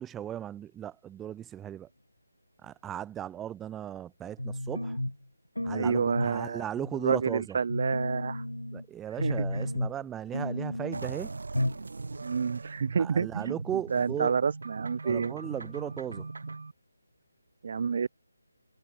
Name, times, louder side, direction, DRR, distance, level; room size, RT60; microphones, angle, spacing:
voice 1, 0.0-1.9 2.6-5.0 5.6-7.6 8.7-11.3 13.0-14.3 15.0-16.3, right 10 dB, 10° right, 1.5 m, -37 dB
sound 1, 4.4-5.2 5.5-6.4 6.8-7.3 7.7-8.8 9.2-10.0 10.3-11.1 11.5-11.9 12.1-12.2, left 1 dB, 90° left, 0.5 m, -33 dB
voice 2, 5.7-6.6 7.0-8.4 9.2-9.6 12.2-13.6 13.9-15.3 17.6-18.1, right 6 dB, 45° right, 0.7 m, -29 dB
sound 2, 10.9-16.7, right 3 dB, 60° right, 1.3 m, -40 dB
figure-of-eight pair, 155°, 0 cm